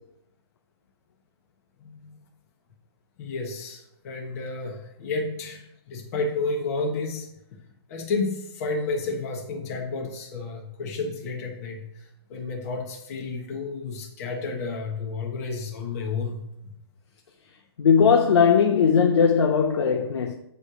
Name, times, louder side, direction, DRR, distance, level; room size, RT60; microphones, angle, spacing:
voice 1, 1.8-2.2 3.2-7.3 7.9-16.7, left 3 dB, 35° left, 1.2 m, -31 dB
voice 2, 17.8-20.3, left 6 dB, 85° left, 0.8 m, -19 dB
9.5 x 3.2 x 5.0 m
hypercardioid pair, 170°, 14 cm